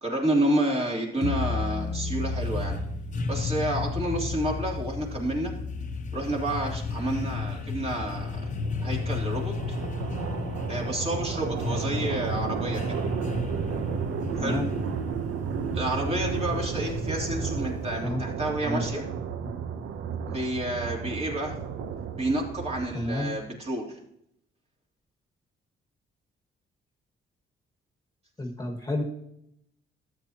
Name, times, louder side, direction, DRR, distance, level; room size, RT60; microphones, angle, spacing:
voice 1, 0.0-2.8 3.3-5.5 6.1-8.4 8.8-9.8 10.7-13.0 14.3-14.6 15.7-19.0 20.3-21.5 22.2-23.9, right 1 dB, 30° right, -1 dB, 3.1 m, -29 dB
sound 1, 1.2-18.0, left 4 dB, 40° left, 1.0 m, -33 dB
sound 2, 7.4-23.4, right 7 dB, 80° right, 0.9 m, -33 dB
voice 2, 14.4-14.7 18.0-18.2 18.6-18.9 22.9-23.3 28.4-29.0, left 1 dB, 15° left, 3 dB, 1.5 m, -30 dB
12.5 x 8.4 x 2.9 m, 0.75 s
cardioid pair, 90°, 20 cm